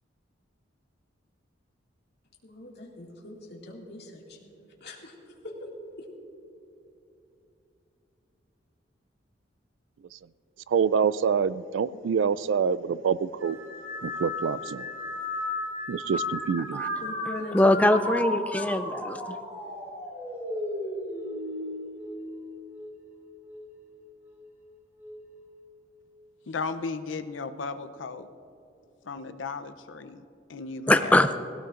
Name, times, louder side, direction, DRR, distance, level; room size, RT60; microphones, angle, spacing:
voice 1, 2.4-4.5 4.8-5.7 17.0-18.2, left 1 dB, 60° left, -2 dB, 2.1 m, -41 dB
voice 2, 10.7-13.6 14.0-14.9 15.9-16.8, right 6 dB, 80° right, 18 dB, 0.3 m, -26 dB
sound 1, 13.4-23.0 23.5-24.0 25.0-25.4, left 1 dB, 10° right, 3.6 m, -35 dB
voice 3, 17.5-19.2 30.9-31.3, left 1 dB, 10° left, 9 dB, 0.4 m, -22 dB
voice 4, 26.5-28.3 29.0-31.3, left 4 dB, 80° left, 11 dB, 0.6 m, -35 dB
18.0 x 17.0 x 2.5 m, 2.8 s
head